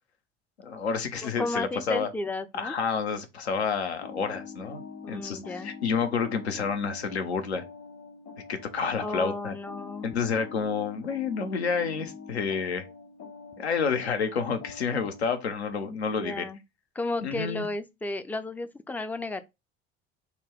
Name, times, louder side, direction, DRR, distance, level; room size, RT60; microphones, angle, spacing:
voice 1, 0.6-2.1 2.5-7.6 8.5-9.6 10.0-12.8 13.6-16.5 17.2-17.7, left 5 dB, 80° left, 0.7 m, -29 dB
voice 2, 1.2-2.8 5.0-5.7 9.0-10.1 15.8-16.6 17.0-19.4, left 2 dB, 5° left, 0.3 m, -33 dB
sound 1, 4.0-15.3, left 5 dB, 55° left, 1.6 m, -45 dB
4.0 x 2.2 x 4.4 m
figure-of-eight pair, 60°, 32 cm